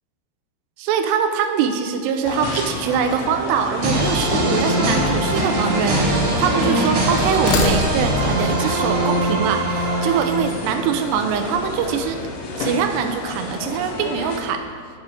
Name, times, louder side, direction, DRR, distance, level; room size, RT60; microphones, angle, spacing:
voice 1, 0.8-12.2 12.6-14.6, right 7 dB, 85° right, 7 dB, 2.7 m, -23 dB
sound 1, 2.2-14.4, left 3 dB, 70° left, 2.1 m, -30 dB
sound 2, 3.8-4.6 5.5-6.6 7.3-8.3, left 2 dB, 90° left, 3.2 m, -28 dB
sound 3, 3.8-10.8, right 1 dB, 60° right, 2.4 m, -22 dB
8.7 x 7.3 x 4.8 m, 2.3 s
omnidirectional pair, 4.8 m